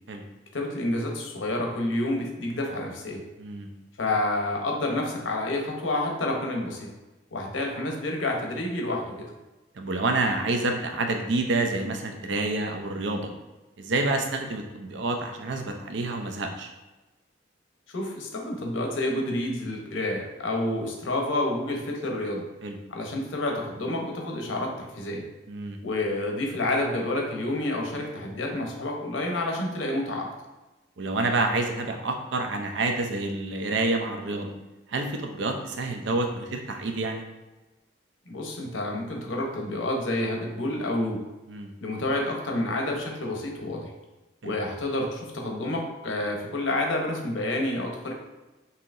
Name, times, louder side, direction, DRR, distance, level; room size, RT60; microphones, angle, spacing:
voice 1, 0.5-3.2 4.0-6.9 7.3-9.3 17.9-22.5 22.9-25.2 25.8-30.3 38.3-41.2 41.8-43.9 44.4-48.1, left 1 dB, 85° left, 1 dB, 0.8 m, -29 dB
voice 2, 3.4-3.7 9.8-13.3 13.8-16.7 22.6-22.8 25.5-25.8 31.0-34.5 34.9-37.2 41.5-41.7 44.4-44.6, right 2 dB, 70° right, 4 dB, 0.5 m, -28 dB
5.5 x 2.8 x 2.5 m, 1.1 s
head